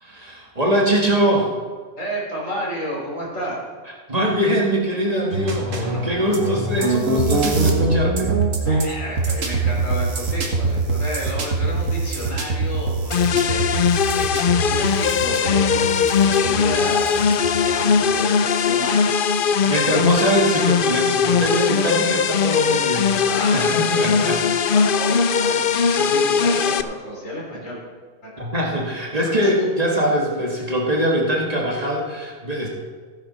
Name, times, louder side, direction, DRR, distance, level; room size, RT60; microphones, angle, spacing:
voice 1, 0.0-1.5 4.1-8.4 19.7-24.5 28.4-32.7, equal, 30° right, -2 dB, 1.9 m, -22 dB
voice 2, 2.0-3.6 5.7-6.0 8.7-13.6 14.1-19.1 23.1-24.2 24.7-27.8 28.2-28.3 29.4-29.7, equal, 80° left, -3 dB, 3.9 m, -31 dB
sound 1, 5.3-17.8, right 3 dB, 80° right, 2.0 m, -23 dB
sound 2, 13.1-26.8, left 6 dB, 55° left, 0.6 m, -19 dB
15.0 x 9.5 x 4.2 m, 1.5 s
omnidirectional pair, 1.3 m